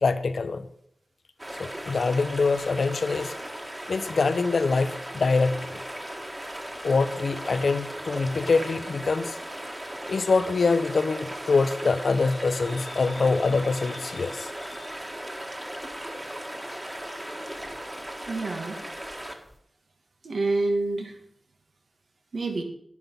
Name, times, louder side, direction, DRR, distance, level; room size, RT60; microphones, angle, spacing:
voice 1, 0.0-0.7 1.6-3.4 3.9-5.8 6.8-9.4 10.1-14.9, left 4 dB, 75° left, 11 dB, 0.9 m, -25 dB
sound 1, 1.4-19.6, right 1 dB, 20° right, 1.9 m, -37 dB
voice 2, 18.3-18.8 20.2-21.2 22.3-22.6, right 2 dB, 75° right, 4 dB, 2.0 m, -27 dB
11.0 x 9.9 x 5.8 m, 0.69 s
wide cardioid pair, 105°, 0 cm